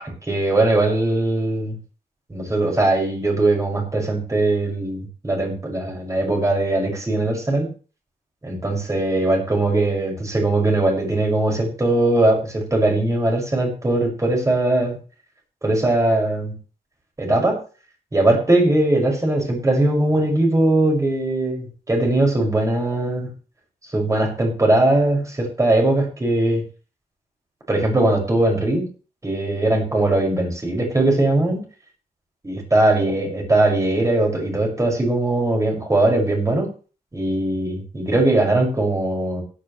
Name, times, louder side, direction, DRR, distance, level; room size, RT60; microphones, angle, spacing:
voice 1, 0.3-1.7 2.3-7.7 8.4-15.0 15.6-16.5 17.2-17.6 18.1-23.3 23.9-26.6 27.7-28.9 29.2-31.6 32.4-36.7 37.1-39.4, right 2 dB, 20° right, 0 dB, 6.3 m, -20 dB
16.5 x 12.5 x 3.3 m, 0.37 s
wide cardioid pair, 140°, 16 cm